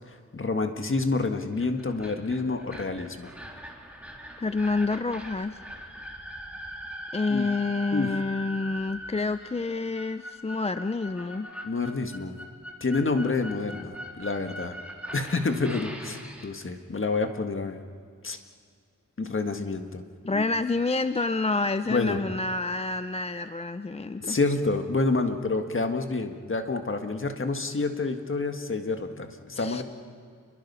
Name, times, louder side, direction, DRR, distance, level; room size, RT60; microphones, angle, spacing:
voice 1, 0.1-3.3 7.3-7.5 7.9-8.1 11.6-12.4 12.8-14.8 15.1-17.8 18.2-18.4 19.2-20.0 20.3-20.4 21.9-22.2 24.2-29.8, left 3 dB, 40° left, 6 dB, 1.7 m, -28 dB
sound 1, 1.4-16.5, equal, 5° right, 3.1 m, -41 dB
voice 2, 4.4-5.6 7.1-11.5 20.3-24.4 29.6-29.8, left 3 dB, 20° left, 11 dB, 0.5 m, -28 dB
29.0 x 22.5 x 5.6 m, 2.1 s
wide cardioid pair, 105°, 31 cm